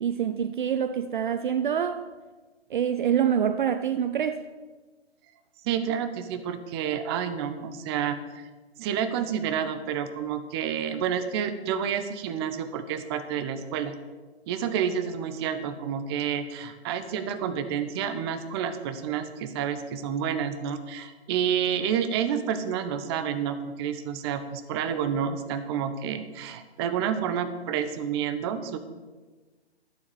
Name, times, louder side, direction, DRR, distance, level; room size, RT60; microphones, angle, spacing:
voice 1, 0.0-2.1 2.7-4.5, right 8 dB, 50° right, 0.6 m, -26 dB
voice 2, 5.6-8.5 8.8-13.9 14.5-28.8, right 8 dB, 25° right, 0.9 m, -29 dB
12.0 x 7.3 x 8.1 m
figure-of-eight pair, 130°, 33 cm